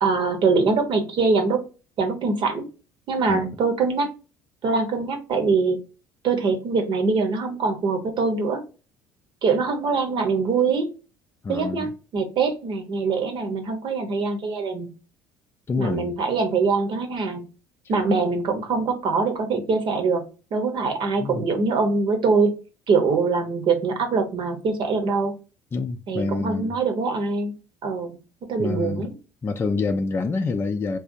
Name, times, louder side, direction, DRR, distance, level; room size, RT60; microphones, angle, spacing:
voice 1, 0.0-1.7 2.0-2.7 3.1-4.1 4.6-5.8 6.2-8.6 9.4-10.9 11.5-14.9 15.8-17.4 17.9-20.2 20.5-22.5 22.9-25.3 26.1-27.5 27.8-28.2 28.5-29.1, right 4 dB, 50° right, 1.0 m, -23 dB
voice 2, 11.4-11.9 15.7-16.2 21.2-21.5 25.7-26.8 28.6-29.1 29.4-31.0, left 4 dB, 25° left, 0.4 m, -27 dB
3.9 x 2.4 x 2.7 m
hypercardioid pair, 65°, 10 cm